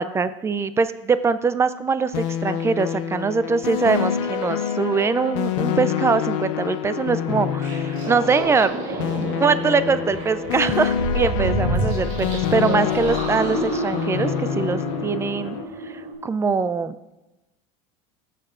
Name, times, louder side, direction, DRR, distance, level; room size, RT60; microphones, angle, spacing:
voice 1, 0.0-9.0 9.4-15.6 16.2-17.0, right 5 dB, 15° right, 14 dB, 0.3 m, -22 dB
sound 1, 2.1-15.6, left 9 dB, 80° left, 0.7 m, -27 dB
sound 2, 7.6-16.1, right 1 dB, 60° right, 3.1 m, -29 dB
14.5 x 6.6 x 2.5 m, 1.0 s
supercardioid pair, 125°, 17 cm